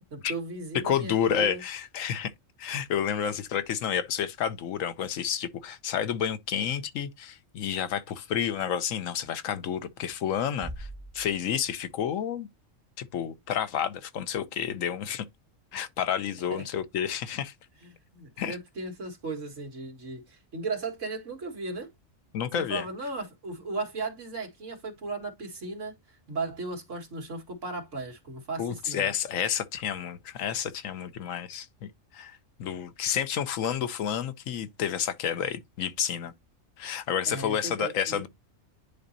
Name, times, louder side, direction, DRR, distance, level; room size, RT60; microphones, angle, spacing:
voice 1, 0.1-1.6 16.5-16.7 17.8-21.9 22.5-29.1 37.3-38.3, right 3 dB, 70° right, 2.1 m, -36 dB
voice 2, 0.8-2.3 2.6-10.9 11.1-12.5 13.0-15.2 15.7-17.5 18.4-18.6 22.3-22.8 28.6-36.3 36.8-38.3, left 8 dB, 85° left, 1.1 m, -30 dB
Bass drum, 10.6-12.1, right 1 dB, 25° right, 0.3 m, -42 dB
10.0 x 4.0 x 2.7 m
omnidirectional pair, 1.4 m